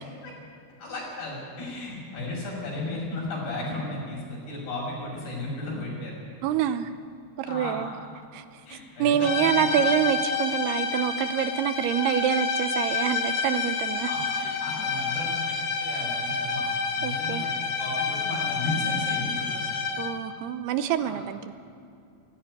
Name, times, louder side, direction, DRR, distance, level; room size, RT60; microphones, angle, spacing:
voice 1, 0.8-6.1 7.4-7.9 8.7-9.8 14.1-16.6 17.0-17.5 17.8-19.8 21.0-21.2, left 2 dB, 80° left, -3 dB, 8.1 m, -35 dB
voice 2, 6.4-6.9 7.4-7.9 8.3-14.1 17.0-17.5 20.0-21.5, right 10 dB, 80° right, 11 dB, 2.8 m, -26 dB
sound 1, 9.2-20.3, left 4 dB, 60° left, 2.5 m, -29 dB
17.0 x 16.0 x 9.7 m, 2.4 s
omnidirectional pair, 4.6 m